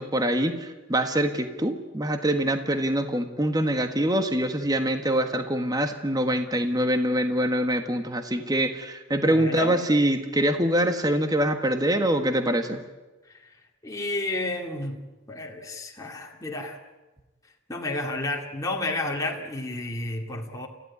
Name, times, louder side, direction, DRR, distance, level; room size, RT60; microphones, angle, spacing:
voice 1, 0.0-12.8, right 1 dB, 20° right, 7 dB, 1.5 m, -24 dB
voice 2, 9.2-9.8 13.3-13.4 13.8-15.0 15.3-16.8 17.7-20.7, left 2 dB, 15° left, -1 dB, 2.6 m, -31 dB
29.0 x 15.5 x 9.8 m, 1.1 s
head